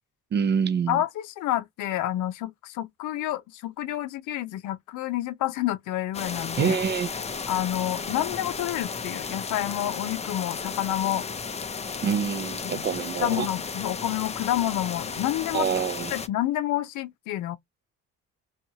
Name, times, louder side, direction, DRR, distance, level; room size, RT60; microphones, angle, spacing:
voice 1, 0.3-1.0 6.6-7.1 12.0-13.5 15.5-16.2, right 7 dB, 35° right, 0.4 m, -26 dB
voice 2, 0.9-6.8 7.5-11.3 12.6-12.8 13.2-15.7 16.1-17.6, left 13 dB, 85° left, 0.5 m, -29 dB
sound 1, 6.1-16.3, left 5 dB, 20° left, 0.4 m, -34 dB
2.7 x 2.3 x 2.7 m
cardioid pair, 90°, 30 cm